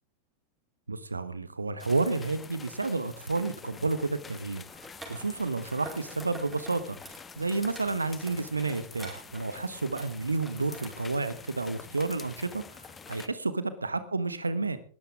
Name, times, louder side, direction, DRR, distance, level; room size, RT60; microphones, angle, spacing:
voice 1, 0.9-4.6 5.1-7.0 7.4-14.8, right 3 dB, 80° right, 13 dB, 1.2 m, -31 dB
sound 1, 1.8-13.3, left 5 dB, 15° left, 1.2 m, -47 dB
sound 2, 4.7-10.8, right 2 dB, 10° right, 5.0 m, -49 dB
20.0 x 13.0 x 3.6 m, 0.42 s
figure-of-eight pair, 90°, 0 cm